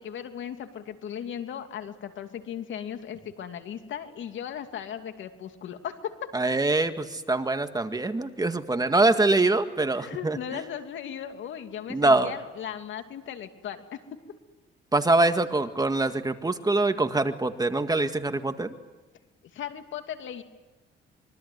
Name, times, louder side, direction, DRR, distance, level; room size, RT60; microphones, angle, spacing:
voice 1, 0.0-6.3 10.0-14.2 19.5-20.4, left 9 dB, 75° left, 7 dB, 2.8 m, -37 dB
voice 2, 6.3-10.6 11.9-12.3 14.9-18.7, right 2 dB, 20° right, 8 dB, 2.0 m, -24 dB
26.0 x 23.5 x 9.5 m, 1.1 s
cardioid pair, 90°, 20 cm